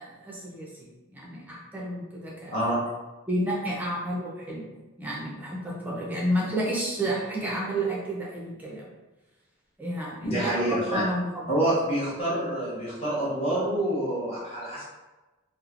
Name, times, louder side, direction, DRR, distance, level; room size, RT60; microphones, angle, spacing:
voice 1, 0.0-2.7 3.3-4.7 5.0-8.9 9.8-11.7, right 1 dB, 10° right, -4 dB, 0.5 m, -31 dB
voice 2, 2.5-2.8 10.2-11.0 11.5-14.8, right 1 dB, 30° left, -9 dB, 1.0 m, -27 dB
3.1 x 2.0 x 2.4 m, 1.1 s
head